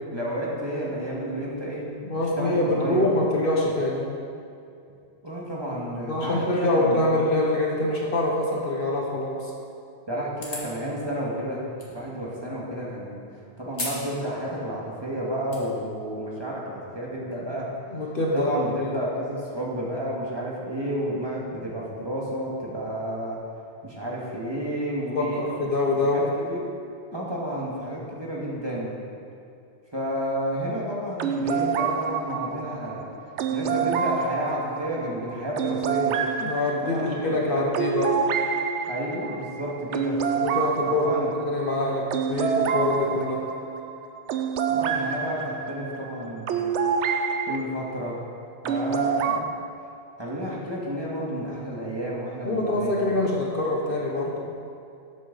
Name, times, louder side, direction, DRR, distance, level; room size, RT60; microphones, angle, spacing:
voice 1, 0.1-1.8 2.4-3.1 5.2-7.0 10.1-11.6 11.9-13.2 13.6-17.7 18.3-23.4 23.8-25.4 26.0-26.7 27.1-29.0 29.9-33.1 33.5-36.2 36.8-37.6 38.9-40.2 40.9-41.3 44.7-46.7 47.4-48.2 48.6-49.5 50.2-53.1, equal, 20° right, -5 dB, 1.9 m, -31 dB
voice 2, 2.0-4.2 6.1-9.5 17.9-18.9 25.1-26.3 36.4-38.2 40.4-41.2 41.4-43.5 52.4-54.5, left 2 dB, 55° left, -2 dB, 1.3 m, -25 dB
sound 1, 10.3-10.8 11.8-11.9 13.7-14.1 14.4-14.5 15.2-15.6, left 2 dB, 75° left, 2.2 m, -33 dB
sound 2, 31.2-47.6 48.7-49.4, right 6 dB, 85° right, 0.9 m, -27 dB
12.5 x 8.2 x 4.1 m, 2.5 s
omnidirectional pair, 1.2 m